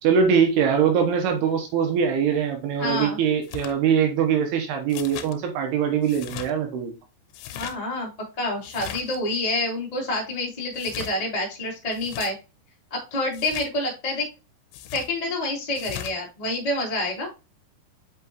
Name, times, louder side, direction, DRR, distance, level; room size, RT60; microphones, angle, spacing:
voice 1, 0.0-6.9, right 7 dB, 75° right, 2.9 m, -22 dB
voice 2, 2.8-3.2 7.5-8.1 8.4-12.3 12.9-14.3 14.9-17.3, left 2 dB, 20° left, 1.0 m, -27 dB
sound 1, 3.4-3.7 4.9-5.3 6.0-6.5 7.3-7.8 8.6-9.2 10.7-11.2 11.9-12.3 13.3-13.7 14.7-15.1 15.8-16.2, left 10 dB, 90° left, 2.9 m, -38 dB
6.0 x 5.5 x 2.9 m
omnidirectional pair, 4.8 m